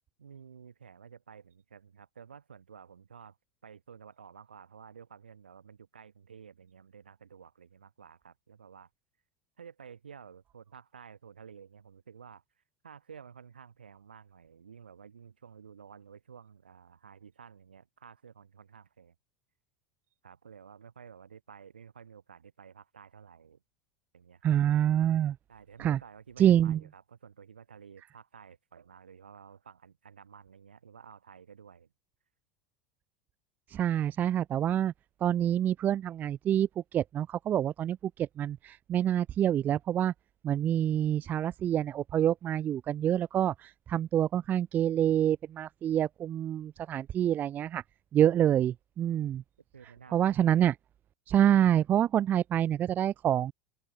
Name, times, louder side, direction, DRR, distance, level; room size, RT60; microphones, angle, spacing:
voice 1, 0.2-3.4 3.6-8.9 9.6-12.4 12.8-19.1 20.2-23.6 24.1-24.6 25.5-31.9 49.7-50.3, right 7 dB, 80° right, 6.7 m, -52 dB
voice 2, 24.4-25.4 25.8-26.0 26.4-26.8 33.7-34.9 35.2-40.1 40.4-47.8 48.1-49.4 50.1-50.7 51.3-53.5, right 10 dB, 35° right, 0.4 m, -27 dB
open air
figure-of-eight pair, 75°, 5 cm